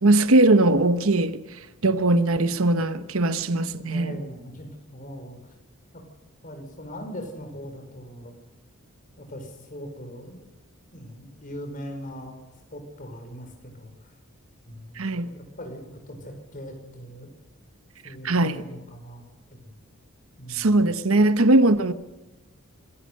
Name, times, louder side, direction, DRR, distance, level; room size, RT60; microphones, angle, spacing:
voice 1, 0.0-1.4 1.8-4.1 15.0-15.3 18.2-18.6 20.5-21.9, right 2 dB, 65° right, 1.0 m, -20 dB
voice 2, 3.7-5.5 5.9-6.0 6.4-8.3 9.2-10.4 10.9-12.3 12.7-14.1 14.7-17.3 18.0-19.2 19.5-19.7 20.4-20.8, equal, 40° left, 5.1 m, -40 dB
25.0 x 16.0 x 6.6 m
head